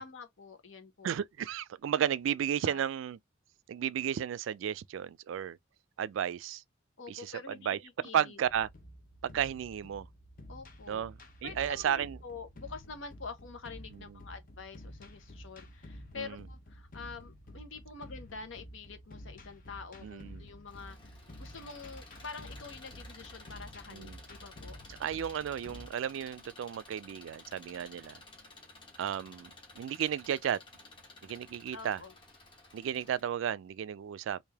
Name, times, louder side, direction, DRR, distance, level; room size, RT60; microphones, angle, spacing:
voice 1, 0.0-1.1 2.6-2.9 7.0-8.4 10.5-11.0 11.4-24.8 31.7-32.1, left 4 dB, 85° left, 0.9 m, -46 dB
voice 2, 1.0-3.2 3.7-5.6 6.0-6.6 7.1-7.8 8.1-8.7 9.2-10.1 10.9-12.2 13.9-14.0 16.2-16.4 20.0-20.5 23.9-24.2 25.0-28.2 29.0-30.6 31.2-32.0 32.7-34.4, right 9 dB, 80° right, 0.3 m, -33 dB
sound 1, 8.4-25.9, equal, 45° left, 0.7 m, -50 dB
Engine, 20.7-33.2, left 2 dB, 25° left, 1.1 m, -54 dB
3.2 x 2.6 x 3.4 m
head